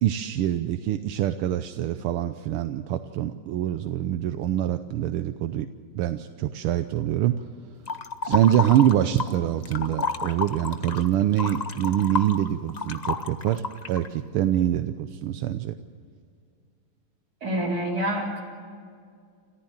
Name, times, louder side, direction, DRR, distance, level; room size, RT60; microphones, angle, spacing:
voice 1, 0.0-5.7 5.9-7.3 8.2-15.7, right 11 dB, 80° right, 9 dB, 1.6 m, -25 dB
sound 1, 7.9-9.4 9.6-14.1, left 4 dB, 75° left, 0.4 m, -30 dB
voice 2, 17.4-18.4, right 1 dB, 45° right, -2 dB, 4.7 m, -27 dB
28.5 x 14.5 x 7.3 m, 2.1 s
omnidirectional pair, 2.4 m